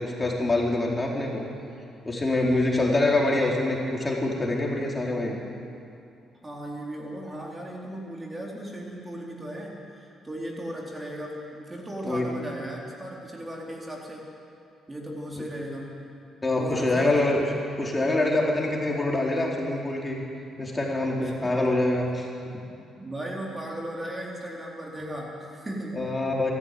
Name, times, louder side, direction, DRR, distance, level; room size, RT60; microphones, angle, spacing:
voice 1, 0.0-1.5 2.0-5.4 12.0-12.3 15.4-15.5 16.4-17.5 17.8-20.2 20.6-22.3 25.0-25.1 25.9-26.5, left 2 dB, 20° left, -2 dB, 4.4 m, -25 dB
voice 2, 6.4-14.3 14.9-16.0 16.5-17.1 21.2-21.3 23.0-26.0, right 1 dB, 20° right, -2 dB, 3.8 m, -36 dB
23.0 x 14.5 x 9.5 m, 2.6 s
cardioid pair, 90°, 0 cm